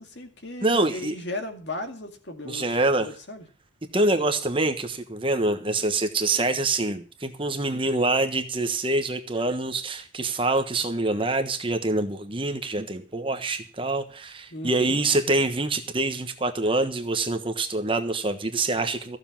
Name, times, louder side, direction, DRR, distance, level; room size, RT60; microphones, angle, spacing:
voice 1, 0.0-3.4 14.5-15.0, left 2 dB, 60° left, 5 dB, 2.3 m, -36 dB
voice 2, 0.6-1.1 2.4-3.1 3.9-19.2, right 2 dB, 25° right, 7 dB, 1.2 m, -25 dB
15.0 x 7.2 x 7.4 m, 0.39 s
head